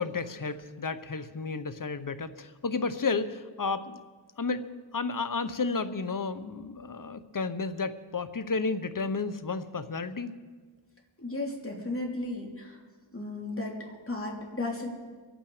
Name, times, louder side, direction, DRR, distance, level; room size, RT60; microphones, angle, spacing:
voice 1, 0.0-4.0 4.4-10.3, left 4 dB, 45° left, 12 dB, 1.0 m, -32 dB
voice 2, 11.2-12.8 13.1-14.9, left 2 dB, 30° left, -1 dB, 3.5 m, -35 dB
23.5 x 9.1 x 5.0 m, 1.5 s
cardioid pair, 45°, 46 cm